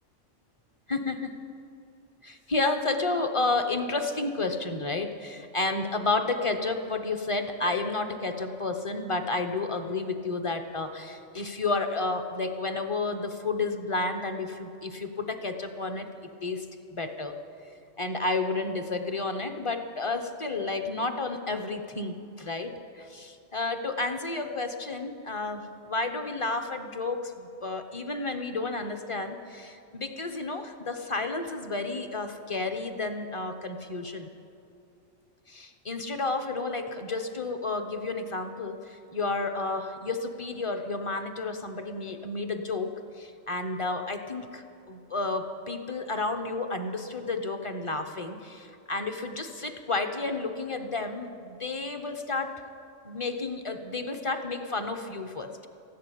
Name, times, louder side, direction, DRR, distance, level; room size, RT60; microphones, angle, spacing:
voice 1, 0.9-1.3 2.2-16.1 16.4-16.7 16.9-17.4 18.0-34.3 35.5-52.6 53.0-55.5, left 3 dB, 30° left, 7 dB, 0.8 m, -31 dB
14.5 x 11.5 x 8.3 m, 2.6 s
omnidirectional pair, 1.4 m